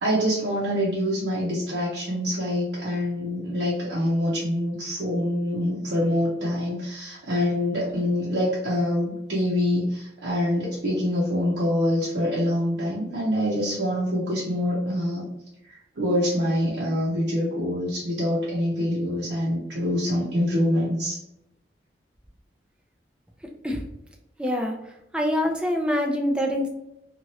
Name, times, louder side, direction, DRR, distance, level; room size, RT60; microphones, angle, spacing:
voice 1, 0.0-15.2 15.7-21.2, left 1 dB, 85° right, -8 dB, 0.8 m, -25 dB
voice 2, 24.4-24.7 25.1-26.7, left 1 dB, 5° right, 2 dB, 0.4 m, -24 dB
2.9 x 2.4 x 2.9 m, 0.87 s
head